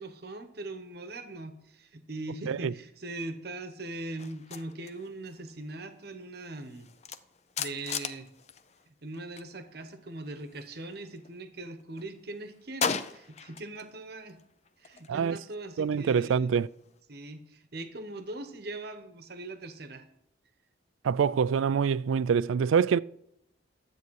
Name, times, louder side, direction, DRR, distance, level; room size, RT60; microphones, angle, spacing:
voice 1, 0.0-6.9 7.6-8.3 8.9-14.4 14.8-16.6 17.1-20.1, right 2 dB, 55° right, 1.0 m, -41 dB
sound 1, 4.2-9.5 9.8-11.4 11.8-13.9 14.2-17.0, left 6 dB, 35° left, 0.5 m, -39 dB
voice 2, 15.8-16.7 21.0-23.0, right 6 dB, 85° right, 0.3 m, -25 dB
12.0 x 8.1 x 4.7 m
head